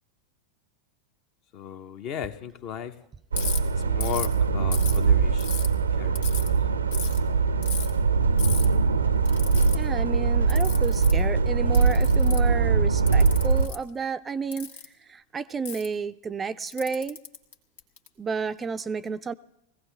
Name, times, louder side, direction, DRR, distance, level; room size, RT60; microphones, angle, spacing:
voice 1, 1.5-2.9 3.7-6.5, left 8 dB, 45° left, 9 dB, 0.9 m, -36 dB
Ratchet pawl, 3.3-3.6 4.0-4.3 4.7-5.7 6.1-6.5 6.9-7.2 7.6-7.9 8.4-8.6 9.2-9.8 10.5-11.2 11.7-12.5 13.1-13.8 14.5-14.8 15.6-15.9 16.6-18.1, left 6 dB, 65° left, 1.6 m, -34 dB
sound 1, 3.3-13.7, right 4 dB, 80° right, 0.6 m, -22 dB
voice 2, 9.7-14.7 15.1-17.2 18.2-19.3, right 5 dB, 20° right, 11 dB, 0.4 m, -31 dB
21.0 x 16.5 x 3.3 m, 0.81 s
figure-of-eight pair, 90°, 0 cm